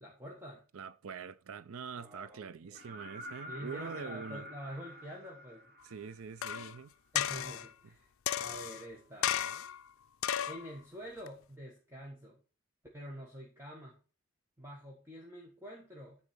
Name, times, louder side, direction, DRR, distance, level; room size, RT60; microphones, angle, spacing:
voice 1, 0.0-0.6 2.0-2.8 3.5-5.7 7.1-8.1 8.4-9.4 10.5-12.4 12.9-14.0 14.6-16.2, equal, 10° right, 1.5 m, -47 dB
voice 2, 0.7-4.4 5.8-6.9, right 6 dB, 80° right, 0.5 m, -44 dB
sound 1, 2.7-6.5 8.4-8.5, equal, 50° right, 2.8 m, -48 dB
sound 2, 6.4-6.7 7.2-7.7 8.3-8.8 9.2-9.8 10.2-10.7 11.3-11.4, left 10 dB, 75° left, 0.5 m, -34 dB
9.8 x 4.2 x 5.8 m
head